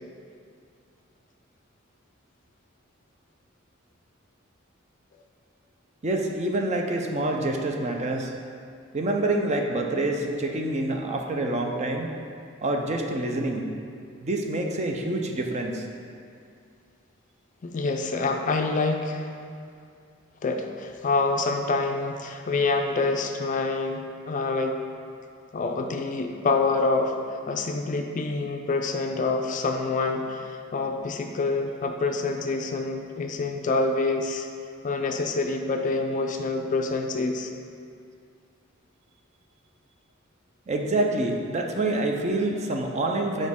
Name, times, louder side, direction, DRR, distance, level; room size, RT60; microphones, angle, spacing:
voice 1, 6.0-8.3 8.9-12.1 12.6-13.7 14.2-15.8 40.7-43.5, right 2 dB, 35° right, 2 dB, 0.5 m, -27 dB
voice 2, 17.6-19.3 20.4-24.8 25.5-34.5 34.8-37.5, left 3 dB, 40° left, 4 dB, 0.4 m, -26 dB
6.2 x 5.1 x 3.6 m, 2.3 s
head